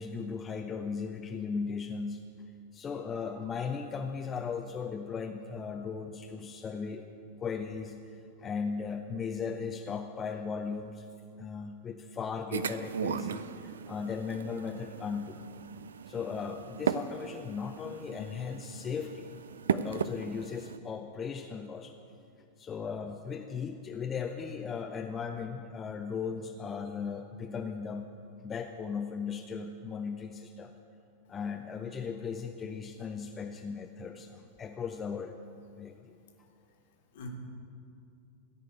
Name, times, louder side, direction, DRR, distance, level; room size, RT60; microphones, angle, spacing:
voice 1, 0.0-2.2 2.7-7.0 7.4-8.0 8.4-11.0 11.4-15.4 16.1-19.3 19.7-21.9 22.6-28.2 28.4-30.7 31.3-35.3 35.8-36.1, left 5 dB, 20° left, 4 dB, 0.5 m, -37 dB
sound 1, 12.5-20.8, right 7 dB, 65° right, 0.3 m, -37 dB
voice 2, 33.0-33.5 34.1-34.2 37.1-37.3, left 3 dB, 55° left, 1 dB, 1.7 m, -48 dB
14.5 x 5.1 x 8.9 m, 2.5 s
figure-of-eight pair, 90°, 0 cm